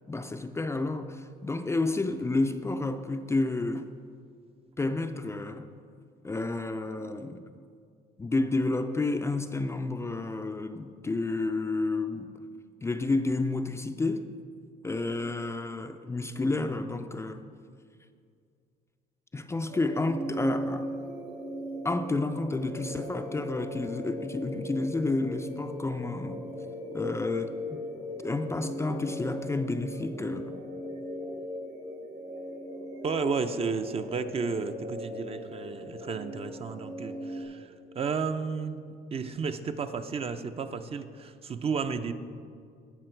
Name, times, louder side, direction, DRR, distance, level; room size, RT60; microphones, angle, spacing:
voice 1, 0.1-3.8 4.8-5.7 6.2-7.5 8.2-12.3 12.8-14.3 14.8-17.4 19.3-20.9 21.8-26.4 26.9-27.8 28.2-30.6, left 2 dB, 15° left, 7 dB, 0.4 m, -30 dB
sound 1, 19.7-37.4, equal, 85° right, 2.4 m, -38 dB
voice 2, 33.0-42.1, right 5 dB, 35° right, 9 dB, 0.6 m, -33 dB
17.0 x 6.0 x 4.5 m, 2.2 s
cardioid pair, 110°, 17 cm